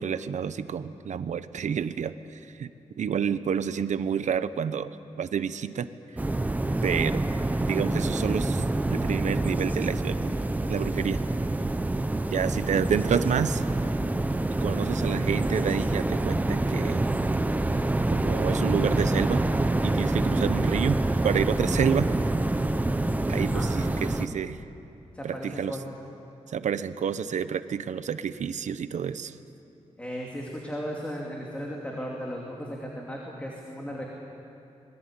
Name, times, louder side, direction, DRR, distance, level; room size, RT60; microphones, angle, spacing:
voice 1, 0.0-2.1 2.6-2.7 3.0-4.9 5.2-5.9 6.8-7.2 7.7-10.3 10.7-11.2 12.3-13.6 14.6-17.0 18.1-19.4 19.8-22.1 23.3-24.6 25.2-25.8 26.5-29.3, right 7 dB, 75° right, 12 dB, 0.8 m, -29 dB
sound 1, 6.2-24.3, right 2 dB, 15° right, 0.8 m, -26 dB
voice 2, 23.4-23.7 25.1-25.9 30.0-34.0, equal, 10° left, -2 dB, 2.7 m, -36 dB
26.5 x 21.0 x 8.8 m, 2.7 s
wide cardioid pair, 160°, 13 cm